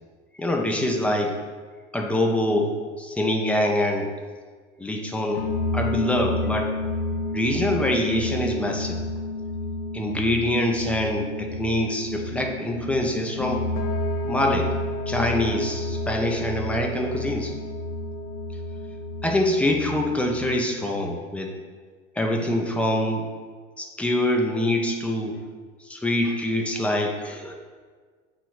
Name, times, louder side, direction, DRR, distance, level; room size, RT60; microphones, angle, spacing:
voice 1, 0.4-1.4 1.9-4.1 4.8-5.5 5.7-6.7 7.3-9.0 9.9-13.6 14.2-14.7 15.1-17.5 19.2-21.5 22.2-23.3 23.8-25.4 25.8-27.5, left 1 dB, 5° left, 1 dB, 0.6 m, -25 dB
sound 1, 5.4-20.5, left 2 dB, 40° left, 0.8 m, -30 dB
8.1 x 3.0 x 4.7 m, 1.5 s
figure-of-eight pair, 90°, 37 cm